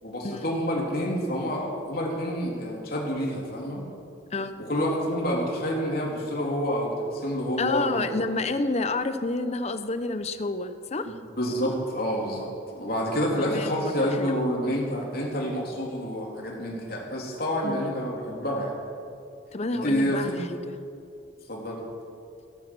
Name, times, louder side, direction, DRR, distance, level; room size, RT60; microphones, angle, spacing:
voice 1, 0.0-3.9 4.6-8.1 11.1-18.8 19.7-20.4 21.5-21.8, equal, 55° left, -2 dB, 3.4 m, -28 dB
voice 2, 4.3-4.7 7.6-11.0 13.3-14.4 17.6-17.9 19.5-20.8, left 3 dB, 35° left, 10 dB, 0.8 m, -29 dB
16.5 x 13.5 x 6.2 m, 2.4 s
head